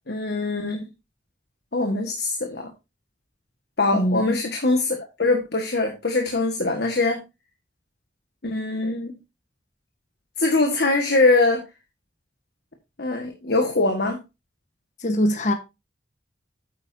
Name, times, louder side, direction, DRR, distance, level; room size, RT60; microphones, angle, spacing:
voice 1, 0.1-0.9 1.7-2.7 3.8-7.2 8.4-9.2 10.4-11.6 13.0-14.2, left 2 dB, 60° left, 1.6 m, -22 dB
voice 2, 3.9-4.4 15.0-15.5, equal, 45° left, 1.3 m, -22 dB
9.1 x 9.1 x 2.7 m
head